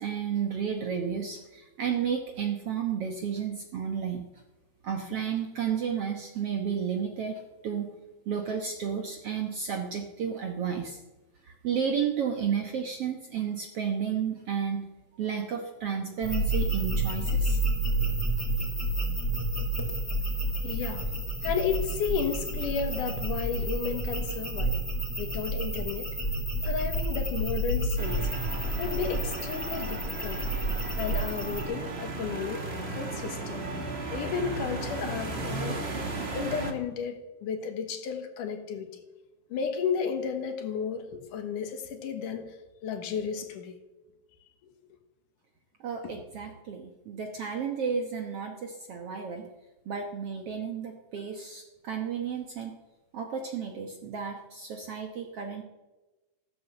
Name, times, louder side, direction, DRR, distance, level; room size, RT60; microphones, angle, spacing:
voice 1, 0.0-4.2 4.8-7.9 8.3-11.0 11.4-14.9 15.2-17.6 45.8-49.5 49.9-52.7 53.1-55.6, right 7 dB, 60° right, 3 dB, 1.6 m, -32 dB
sound 1, 16.2-31.6, right 1 dB, 5° left, 3.0 m, -30 dB
voice 2, 20.6-21.1 21.4-24.8 25.2-26.1 26.6-28.3 28.7-30.5 31.0-33.7 34.1-35.8 36.3-39.0 39.5-42.6 42.8-43.7 46.0-46.1, left 7 dB, 70° left, 6 dB, 2.8 m, -33 dB
sound 2, 28.0-36.7, right 3 dB, 35° right, 0.9 m, -35 dB
15.0 x 13.0 x 7.1 m, 1.1 s
omnidirectional pair, 4.0 m